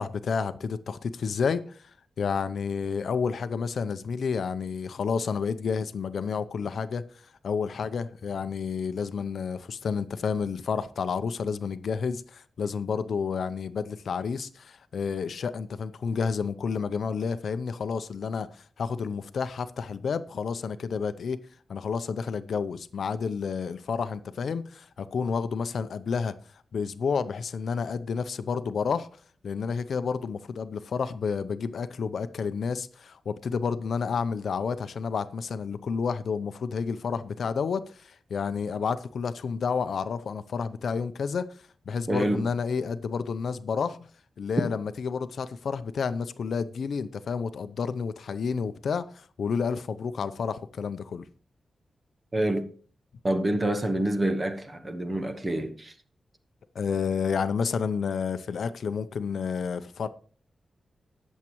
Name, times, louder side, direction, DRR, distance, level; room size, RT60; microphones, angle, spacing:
voice 1, 0.0-1.9 2.2-7.0 7.4-21.4 21.7-26.3 26.7-29.1 29.4-41.5 41.9-44.1 44.4-51.2 56.7-60.1, left 5 dB, 65° left, 0.6 m, -30 dB
voice 2, 42.1-42.4 52.3-52.7 53.2-55.9, right 1 dB, 20° right, 1.1 m, -27 dB
19.5 x 7.3 x 3.0 m
wide cardioid pair, 180°, 0 cm